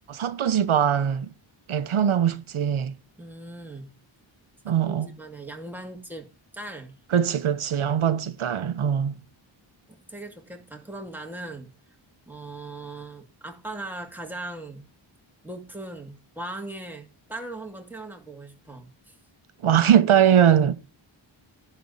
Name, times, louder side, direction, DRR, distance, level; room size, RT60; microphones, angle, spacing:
voice 1, 0.1-1.3 1.7-2.9 4.6-5.1 7.1-9.2 19.6-20.7, right 9 dB, 80° right, 0.9 m, -21 dB
voice 2, 3.2-4.0 4.7-6.3 6.5-7.0 9.9-11.7 12.3-14.9 15.4-19.1, right 2 dB, 5° right, 2.1 m, -39 dB
10.5 x 4.2 x 6.9 m
wide cardioid pair, 115°, 49 cm